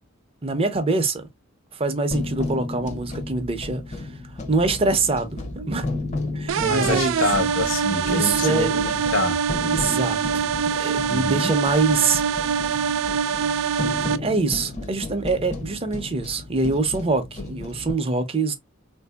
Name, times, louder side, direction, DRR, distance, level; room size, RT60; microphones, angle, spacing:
voice 1, 0.4-1.3 1.7-4.1 4.5-5.9 6.3-7.2 7.9-8.7 9.6-12.5 14.2-18.5, right 3 dB, 30° right, 0.6 m, -24 dB
sound 1, 2.1-17.9, left 2 dB, 35° left, 0.6 m, -34 dB
sound 2, 6.5-14.2, right 7 dB, 70° right, 0.3 m, -24 dB
voice 2, 6.6-9.4 11.1-11.5, left 2 dB, 70° left, 1.0 m, -26 dB
3.6 x 2.6 x 2.2 m
head